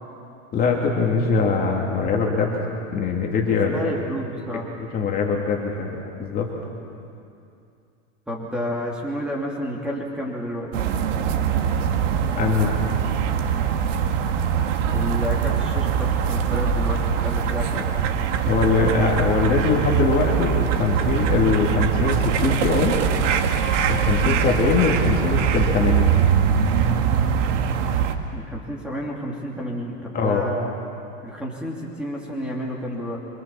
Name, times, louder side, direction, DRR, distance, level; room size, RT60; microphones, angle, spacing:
voice 1, 0.5-2.6 2.9-3.8 4.9-5.9 6.2-6.5 12.4-12.8 18.4-23.0 23.9-26.2 30.1-30.4, left 5 dB, 20° left, -1 dB, 2.9 m, -22 dB
voice 2, 3.7-4.7 8.3-10.7 14.9-17.9 24.2-24.4 28.3-30.7 31.2-33.2, equal, ahead, -3 dB, 3.0 m, -30 dB
sound 1, 10.7-28.2, right 7 dB, 65° right, 2.0 m, -22 dB
26.0 x 25.0 x 7.3 m, 2.6 s
supercardioid pair, 150°, 39 cm